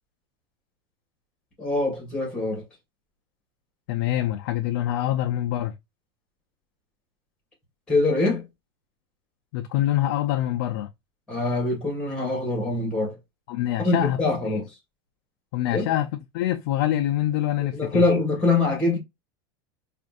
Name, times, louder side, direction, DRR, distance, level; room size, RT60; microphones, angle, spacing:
voice 1, 1.6-2.7 7.9-8.4 11.3-13.2 13.8-14.7 15.6-15.8 17.6-19.0, left 2 dB, 5° left, 1.6 m, -24 dB
voice 2, 3.9-5.7 9.5-10.9 13.5-14.2 14.5-14.6 15.5-16.1 16.3-18.0, left 13 dB, 50° left, 0.4 m, -25 dB
5.0 x 2.5 x 2.4 m
supercardioid pair, 175°, 13 cm